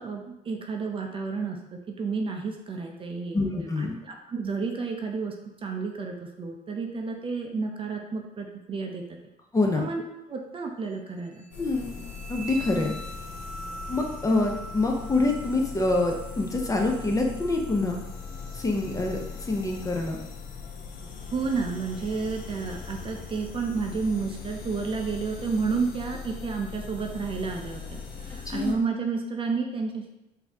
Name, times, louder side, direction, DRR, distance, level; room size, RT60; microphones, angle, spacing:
voice 1, 0.0-1.6 1.9-3.4 3.8-5.3 5.6-9.2 9.7-10.0 10.3-11.4 21.3-30.1, right 4 dB, 30° right, 2 dB, 0.5 m, -31 dB
voice 2, 3.3-3.9 9.5-9.9 11.6-11.9 12.3-12.9 13.9-18.0 18.5-20.2 28.5-28.8, left 2 dB, 20° left, 2 dB, 0.6 m, -26 dB
sound 1, 11.3-20.1, right 2 dB, 40° left, 1.5 m, -44 dB
sound 2, 11.5-28.7, left 5 dB, 60° left, 0.8 m, -40 dB
3.9 x 2.7 x 3.4 m, 0.92 s
cardioid pair, 110°, 17 cm